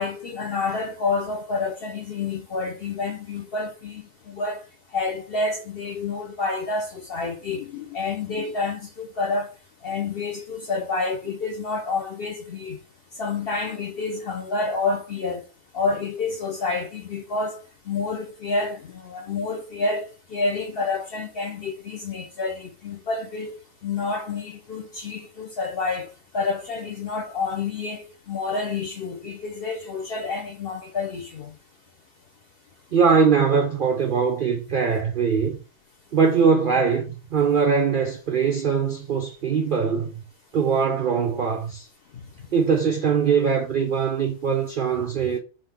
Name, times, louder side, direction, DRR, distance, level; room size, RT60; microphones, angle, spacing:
voice 1, 0.0-4.6 4.9-9.5 9.8-12.8 13.2-15.4 15.7-26.1 26.3-31.5, left 4 dB, 55° left, 0.6 m, -29 dB
voice 2, 32.9-35.6 36.1-40.2 40.5-41.9 42.5-45.4, right 6 dB, 80° right, 0.4 m, -21 dB
3.8 x 2.9 x 3.4 m
omnidirectional pair, 1.6 m